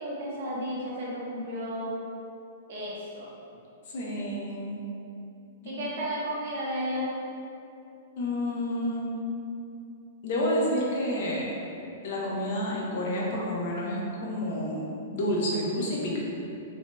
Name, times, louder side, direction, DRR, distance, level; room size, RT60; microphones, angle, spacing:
voice 1, 0.0-1.9 2.7-3.3 5.6-7.1, equal, 55° right, -6 dB, 0.7 m, -33 dB
voice 2, 3.9-4.8 5.6-5.7 8.2-9.1 10.2-11.4 12.0-14.8 15.1-16.2, equal, 50° left, -4 dB, 0.6 m, -29 dB
2.6 x 2.2 x 2.9 m, 2.7 s
hypercardioid pair, 170°, 0 cm